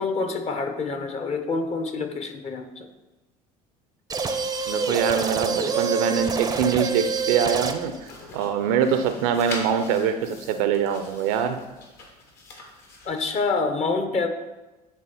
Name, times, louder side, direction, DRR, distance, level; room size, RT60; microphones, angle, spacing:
voice 1, 0.0-2.9 13.0-14.3, left 4 dB, 35° left, 6 dB, 1.0 m, -27 dB
sound 1, 4.1-8.0, right 5 dB, 20° right, 0.6 m, -26 dB
voice 2, 4.7-7.9 8.3-11.6, right 8 dB, 65° right, 9 dB, 0.6 m, -23 dB
sound 2, 7.3-13.4, left 3 dB, 55° left, 1.6 m, -43 dB
9.6 x 3.5 x 4.2 m, 1.1 s
figure-of-eight pair, 65°, 20 cm